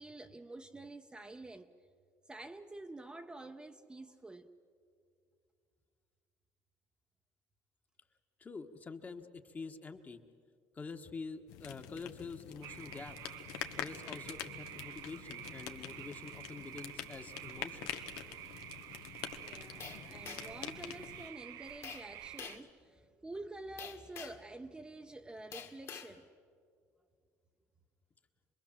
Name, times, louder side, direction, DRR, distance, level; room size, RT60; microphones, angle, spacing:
voice 1, 0.0-1.7 2.3-4.5 19.3-26.3, right 2 dB, 15° right, 0.8 m, -48 dB
voice 2, 8.4-10.2 10.7-13.2 13.7-17.9, left 4 dB, 25° left, 1.3 m, -46 dB
sound 1, 11.5-21.3, left 11 dB, 90° left, 1.2 m, -46 dB
sound 2, 12.6-22.6, right 12 dB, 70° right, 0.7 m, -49 dB
sound 3, 19.8-20.6 21.8-22.1 22.4-22.7 23.8-24.5 25.5-26.1, left 7 dB, 45° left, 1.8 m, -47 dB
26.5 x 21.5 x 7.4 m
cardioid pair, 115°, 6 cm